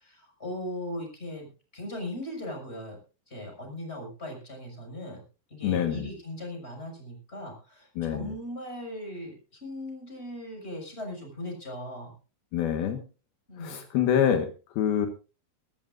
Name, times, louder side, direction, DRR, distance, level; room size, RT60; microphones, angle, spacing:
voice 1, 0.0-3.0 3.3-5.2 5.5-12.1 13.5-13.8, left 1 dB, 15° left, 3 dB, 6.2 m, -38 dB
voice 2, 5.6-6.1 8.0-8.3 12.5-13.0 13.6-15.1, left 9 dB, 75° left, 6 dB, 3.3 m, -26 dB
24.0 x 13.0 x 2.5 m, 0.33 s
omnidirectional pair, 4.5 m